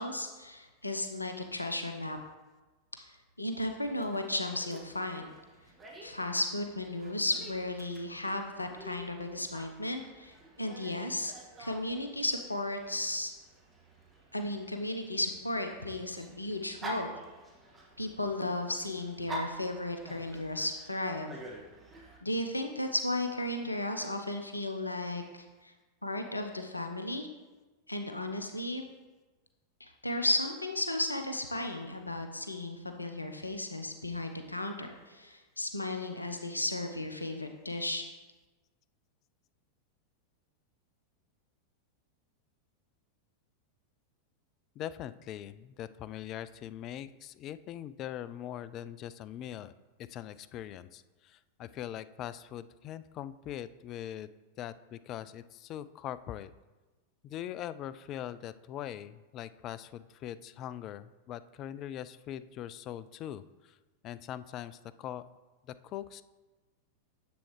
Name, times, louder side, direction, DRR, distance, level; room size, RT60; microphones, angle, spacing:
voice 1, 0.0-2.2 3.4-5.3 6.0-11.3 11.6-13.3 14.3-17.1 18.0-21.4 22.2-25.7 26.0-27.3 27.9-28.8 29.8-38.0, left 1 dB, 85° left, 6 dB, 0.7 m, -34 dB
Dog, 3.9-22.2, equal, 20° right, 1.7 m, -48 dB
voice 2, 44.8-49.7 50.1-54.3 54.6-56.5 57.2-63.8 64.0-65.2 65.6-66.2, left 11 dB, 35° left, 15 dB, 0.4 m, -42 dB
10.0 x 7.5 x 3.2 m, 1.2 s
figure-of-eight pair, 90°, 0 cm